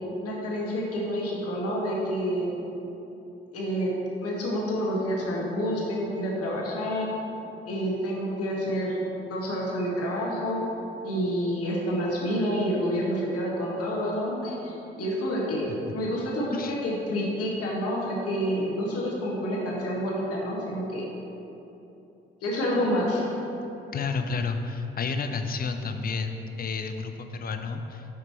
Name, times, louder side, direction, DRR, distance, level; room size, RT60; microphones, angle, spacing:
voice 1, 0.2-2.5 3.5-3.9 4.2-7.1 7.6-9.0 9.3-10.6 11.0-21.1 22.4-23.3, equal, 50° left, -3 dB, 1.5 m, -28 dB
voice 2, 23.9-28.2, left 4 dB, 30° left, 7 dB, 0.6 m, -31 dB
6.2 x 5.9 x 4.4 m, 3.0 s
figure-of-eight pair, 40°, 30 cm